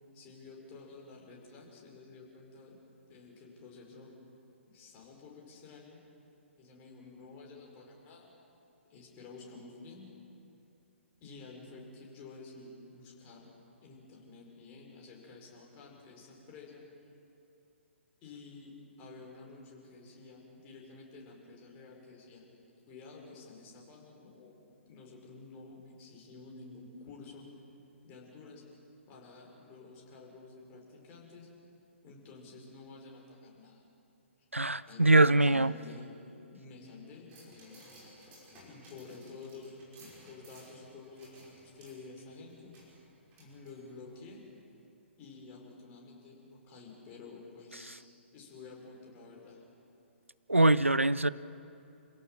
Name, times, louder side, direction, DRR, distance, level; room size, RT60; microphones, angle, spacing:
voice 1, 0.1-2.8 3.1-4.1 4.7-6.1 6.6-8.3 8.9-10.1 11.2-13.5 13.8-16.8 18.2-22.4 22.9-24.6 24.9-27.5 28.0-28.6 29.1-31.5 32.0-33.8 34.4-34.5 34.8-36.1 36.5-42.7 43.4-44.4 45.2-48.0 48.3-49.6, left 3 dB, 25° left, -1 dB, 5.0 m, -51 dB
voice 2, 34.5-35.7 50.5-51.3, right 2 dB, 85° right, 18 dB, 0.5 m, -23 dB
sound 1, 37.3-44.2 44.6-44.7, right 1 dB, 25° right, 5.9 m, -58 dB
28.0 x 17.0 x 7.4 m, 2.7 s
figure-of-eight pair, 125°, 7 cm